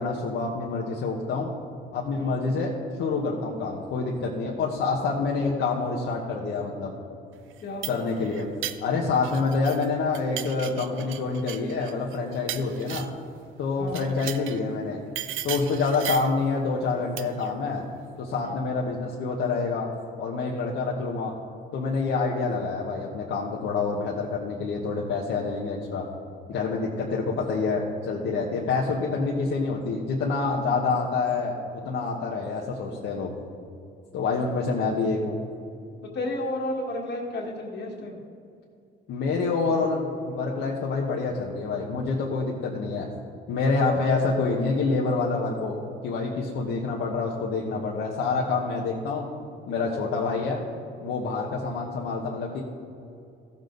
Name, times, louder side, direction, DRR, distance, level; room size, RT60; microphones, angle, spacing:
voice 1, 0.0-1.5 1.9-2.7 3.0-6.9 7.9-8.5 8.8-13.1 13.6-15.0 15.4-17.8 18.2-19.9 20.2-21.3 21.7-26.0 26.5-33.3 34.1-35.4 39.1-43.1 43.5-45.8 46.0-49.2 49.7-50.6 51.0-52.6, left 4 dB, 80° left, -3 dB, 1.3 m, -27 dB
sound 1, 7.5-9.9 10.1-13.3 13.9-14.6 15.2-16.4 17.2-17.5, right 12 dB, 80° right, 0.6 m, -36 dB
voice 2, 13.8-14.1 18.4-18.6 36.1-38.2, left 1 dB, 60° left, -2 dB, 1.9 m, -32 dB
15.0 x 7.3 x 4.0 m, 2.6 s
cardioid pair, 90°, 20 cm